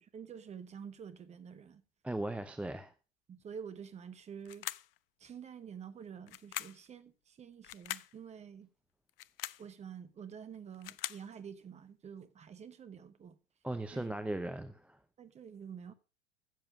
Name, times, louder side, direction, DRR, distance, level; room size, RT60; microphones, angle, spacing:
voice 1, 0.1-1.8 3.3-4.7 5.2-8.7 9.6-13.4 13.9-14.1 15.2-15.9, right 7 dB, 20° right, 1.1 m, -48 dB
voice 2, 2.0-2.9 13.6-15.0, right 1 dB, 5° right, 0.6 m, -38 dB
sound 1, 4.4-5.0 6.3-6.9 7.6-8.1 9.1-9.7 10.5-11.3, left 15 dB, 55° left, 0.5 m, -42 dB
15.0 x 6.9 x 5.3 m
figure-of-eight pair, 85°, 35 cm